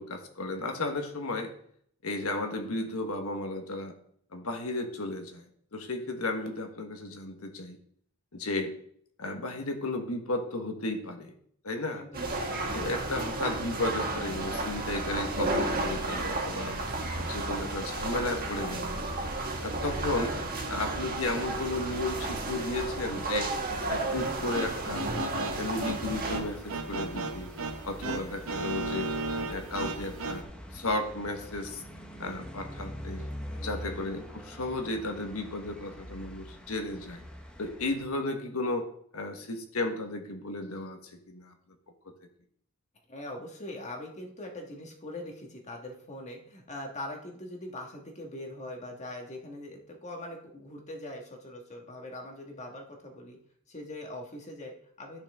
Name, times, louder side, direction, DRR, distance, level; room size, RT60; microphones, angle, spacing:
voice 1, 0.0-1.5 2.0-4.0 4.3-5.5 5.7-7.8 8.3-8.7 9.2-11.3 11.6-12.1 12.7-16.8 17.1-19.0 19.6-20.3 20.7-23.5 23.9-25.1 25.5-27.5 27.8-29.1 29.5-30.4 30.7-31.8 32.2-33.3 33.6-37.2 37.6-38.9 39.1-41.5, left 2 dB, 70° left, 5 dB, 1.3 m, -34 dB
voice 2, 11.9-12.2 33.5-33.9 43.1-53.4 53.7-55.2, left 1 dB, 30° left, 1 dB, 1.6 m, -42 dB
sound 1, 12.1-26.4, right 2 dB, 40° right, 1.5 m, -32 dB
sound 2, 24.2-30.4, right 3 dB, 65° right, 0.9 m, -36 dB
sound 3, 26.1-38.1, equal, 5° left, 0.8 m, -44 dB
11.5 x 5.8 x 3.6 m, 0.65 s
head